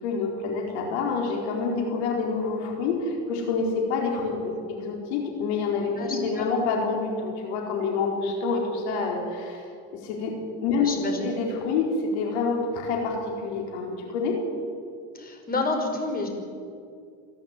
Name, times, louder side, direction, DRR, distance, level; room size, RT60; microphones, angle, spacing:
voice 1, 0.0-11.0 11.2-14.5, left 4 dB, 75° left, 0 dB, 4.6 m, -27 dB
voice 2, 6.0-6.5 10.8-11.3 15.1-16.3, left 3 dB, 25° left, 3 dB, 5.3 m, -29 dB
27.0 x 11.5 x 9.9 m, 2.3 s
supercardioid pair, 100°, 33 cm